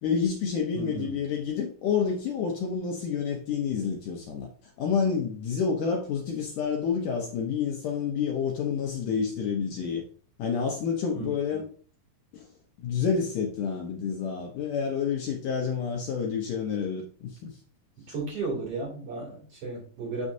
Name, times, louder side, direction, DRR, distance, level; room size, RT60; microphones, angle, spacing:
voice 1, 0.0-4.5 4.8-10.0 10.4-11.6 12.3-12.5 12.8-17.5, left 6 dB, 75° left, 0 dB, 2.0 m, -29 dB
voice 2, 0.7-1.2 11.1-11.6 18.1-20.3, right 3 dB, 40° right, -4 dB, 3.4 m, -34 dB
7.3 x 6.3 x 2.7 m, 0.43 s
omnidirectional pair, 4.5 m